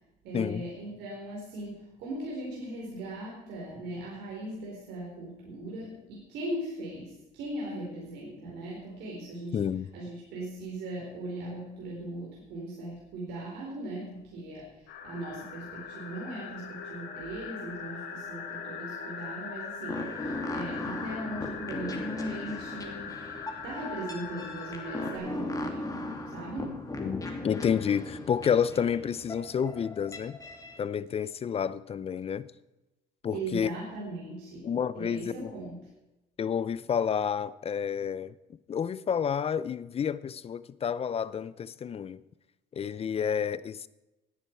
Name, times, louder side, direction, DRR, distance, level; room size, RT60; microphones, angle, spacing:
voice 1, 0.2-9.6 9.9-23.2 23.6-26.8 33.3-35.8, right 1 dB, 85° right, 4.2 m, -39 dB
voice 2, 9.5-9.9 27.0-30.4 30.8-32.5 33.2-33.7 34.6-35.5 36.4-38.3 38.7-42.2 42.7-43.9, left 7 dB, 35° left, 0.6 m, -30 dB
sound 1, 14.9-25.2, left 6 dB, 85° left, 3.0 m, -41 dB
sound 2, 19.9-30.8, left 2 dB, 20° left, 2.6 m, -38 dB
17.5 x 10.0 x 4.6 m
cardioid pair, 110°, 17 cm